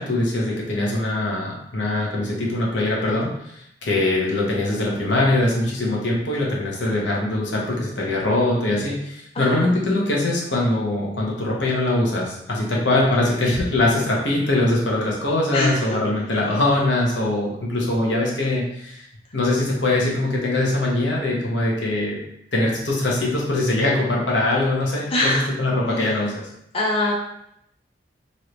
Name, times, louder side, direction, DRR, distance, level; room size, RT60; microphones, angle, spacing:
voice 1, 0.0-19.0 19.3-22.2 22.5-26.5, left 2 dB, 85° left, -3 dB, 0.9 m, -22 dB
voice 2, 15.5-16.0 25.1-25.5 26.7-27.1, left 1 dB, 30° left, -3 dB, 0.5 m, -23 dB
3.1 x 2.7 x 3.1 m, 0.75 s
head